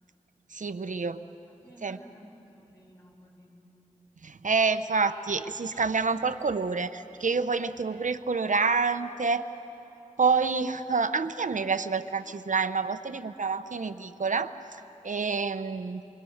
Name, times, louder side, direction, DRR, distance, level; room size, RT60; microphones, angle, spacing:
voice 1, 0.5-1.2 1.8-2.0 4.2-9.4 10.2-14.5 15.0-16.0, right 4 dB, 70° right, 11 dB, 0.8 m, -27 dB
voice 2, 1.5-3.6 7.6-7.8, equal, 25° left, -1 dB, 6.7 m, -54 dB
29.0 x 25.0 x 6.5 m, 2.9 s
wide cardioid pair, 70°, 13 cm